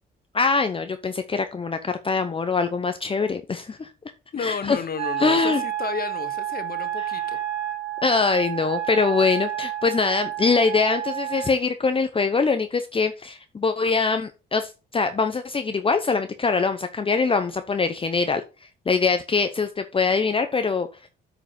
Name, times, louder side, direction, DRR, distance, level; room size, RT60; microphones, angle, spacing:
voice 1, 0.3-3.9 4.4-4.8 5.2-5.6 8.0-18.4 18.9-20.9, left 4 dB, 25° left, 9 dB, 0.8 m, -23 dB
voice 2, 4.3-7.4 11.3-11.5, left 6 dB, 50° left, 9 dB, 1.5 m, -32 dB
Wind instrument woodwind instrument, 5.0-11.6, right 12 dB, 50° right, 3.4 m, -30 dB
8.8 x 5.0 x 5.2 m, 0.30 s
cardioid pair, 90°, 20 cm